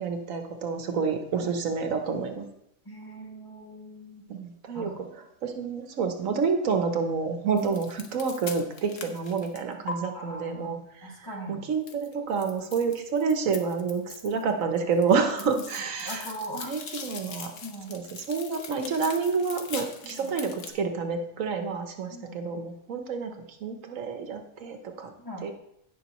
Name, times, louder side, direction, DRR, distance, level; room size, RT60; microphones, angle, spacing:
voice 1, 0.0-2.4 4.3-4.9 5.4-10.8 11.5-16.3 16.6-17.5 17.9-23.3 23.6-25.1 25.4-25.5, right 5 dB, 90° right, 5 dB, 1.4 m, -28 dB
voice 2, 2.9-4.2 4.7-4.9 6.3-6.4 10.1-11.6 15.4-15.6 16.0-16.7 17.6-17.9 20.1-20.3 22.1-22.3 25.2-25.5, right 1 dB, 15° left, -2 dB, 1.8 m, -40 dB
sound 1, 7.6-9.9 11.9-14.5 14.8-20.7, left 5 dB, 75° left, 1.3 m, -41 dB
16.5 x 5.9 x 3.0 m, 0.76 s
omnidirectional pair, 1.3 m